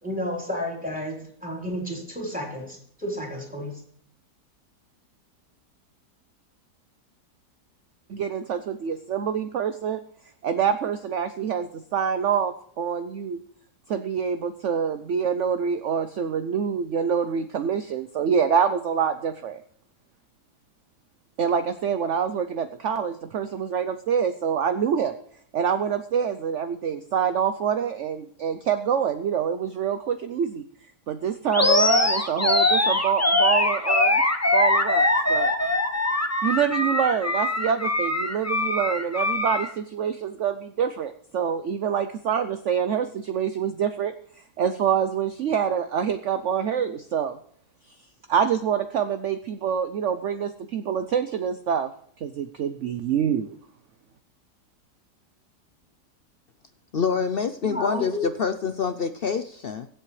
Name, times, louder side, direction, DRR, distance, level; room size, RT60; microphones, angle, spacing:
voice 1, 0.0-3.8 57.6-58.2, equal, 5° right, -1 dB, 3.8 m, -31 dB
voice 2, 8.1-10.0 10.4-13.4 13.9-19.6 21.4-25.1 25.5-30.6 31.1-34.2 34.5-35.5 36.4-44.1 44.6-47.4 48.3-51.9 52.2-53.5, right 7 dB, 60° right, 10 dB, 0.8 m, -26 dB
Animal, 31.5-39.7, left 2 dB, 15° left, 0.7 m, -22 dB
voice 3, 56.9-59.9, left 6 dB, 70° left, 9 dB, 0.5 m, -26 dB
23.5 x 7.9 x 3.2 m, 0.64 s
omnidirectional pair, 1.8 m